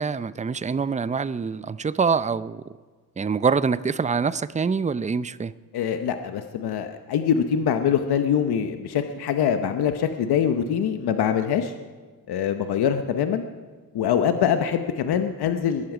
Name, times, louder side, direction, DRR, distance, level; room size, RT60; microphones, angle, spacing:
voice 1, 0.0-2.6 3.2-5.5, right 5 dB, 20° right, 16 dB, 0.5 m, -25 dB
voice 2, 5.7-11.7 12.3-13.4 13.9-15.9, left 8 dB, 85° left, 7 dB, 0.9 m, -24 dB
21.0 x 11.5 x 5.0 m, 1.4 s
cardioid pair, 70°, 37 cm